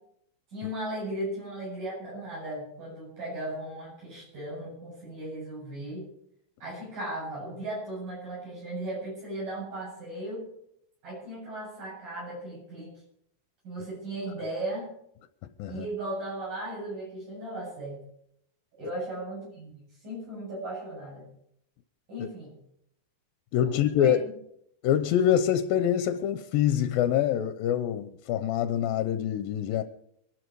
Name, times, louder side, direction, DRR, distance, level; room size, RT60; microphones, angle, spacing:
voice 1, 0.5-6.1 6.6-10.5 11.0-12.9 13.6-14.9 15.7-18.0 18.7-19.7 20.0-21.2 22.1-22.5 23.6-24.2, right 1 dB, 60° right, 9.7 m, -36 dB
voice 2, 23.5-24.2 24.8-29.8, left 10 dB, 80° left, 2.5 m, -25 dB
23.5 x 12.0 x 4.8 m
omnidirectional pair, 4.2 m